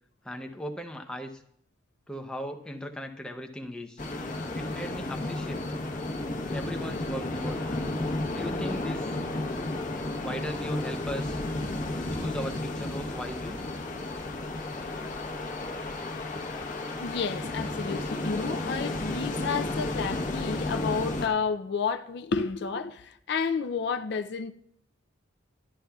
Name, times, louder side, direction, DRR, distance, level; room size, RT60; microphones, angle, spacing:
voice 1, 0.2-1.4 2.1-4.0 4.5-5.6 6.5-7.6 8.3-9.2 10.2-11.4 12.1-13.6, equal, 5° left, 0.5 m, -37 dB
sound 1, 4.0-21.3, left 2 dB, 40° left, 0.9 m, -32 dB
voice 2, 17.0-24.5, left 5 dB, 55° left, 0.4 m, -31 dB
11.5 x 11.0 x 2.3 m
head